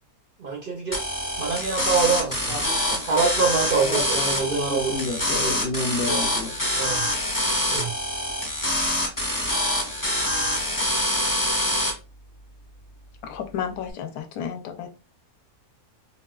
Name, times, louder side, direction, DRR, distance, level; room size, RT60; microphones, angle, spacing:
voice 1, 0.4-1.0 1.4-2.5 3.0-5.0 6.6-7.2 7.7-7.9, right 5 dB, 75° right, 0.5 m, -25 dB
sound 1, 0.9-11.9, left 1 dB, 25° left, 0.4 m, -25 dB
voice 2, 3.7-6.6, left 2 dB, 50° left, 0.8 m, -30 dB
voice 3, 13.2-14.9, left 8 dB, 75° left, 1.1 m, -32 dB
3.9 x 2.2 x 2.3 m
omnidirectional pair, 1.6 m